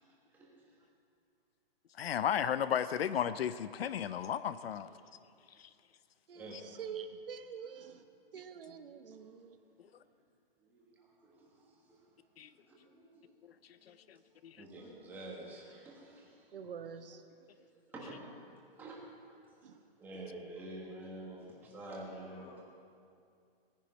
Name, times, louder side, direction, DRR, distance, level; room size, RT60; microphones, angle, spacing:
voice 1, 0.3-0.8 6.3-6.7 9.1-9.2 10.6-12.2 12.4-13.3 13.8-14.0 14.6-16.5 17.4-17.5 17.9-19.4 19.6-19.7 20.0-22.6, right 1 dB, 5° right, -3 dB, 1.3 m, -49 dB
voice 2, 2.0-4.9 5.6-5.7 12.4-12.5 13.9-14.2 14.4-14.6, left 9 dB, 85° left, 14 dB, 0.6 m, -34 dB
voice 3, 6.3-8.0 8.3-9.6 16.5-17.2 19.6-19.8, right 7 dB, 70° right, 8 dB, 1.1 m, -46 dB
voice 4, 22.2-22.6, left 6 dB, 15° left, 2 dB, 0.9 m, -59 dB
17.5 x 10.0 x 5.3 m, 2.4 s
hypercardioid pair, 170°, 30 cm